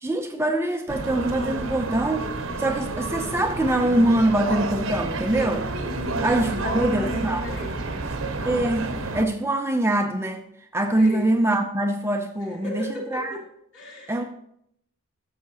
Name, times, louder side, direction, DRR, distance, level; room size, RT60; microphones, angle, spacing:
voice 1, 0.0-2.3 2.6-5.7 6.2-7.6 8.4-10.4 10.7-13.3 14.1-14.2, right 1 dB, 10° right, 5 dB, 0.5 m, -24 dB
sound 1, 0.9-9.2, right 2 dB, 65° right, 0.9 m, -29 dB
voice 2, 5.8-8.1 11.0-11.3 12.4-13.4 13.7-14.3, left 1 dB, 60° left, -4 dB, 3.3 m, -37 dB
12.0 x 7.1 x 2.8 m, 0.71 s
head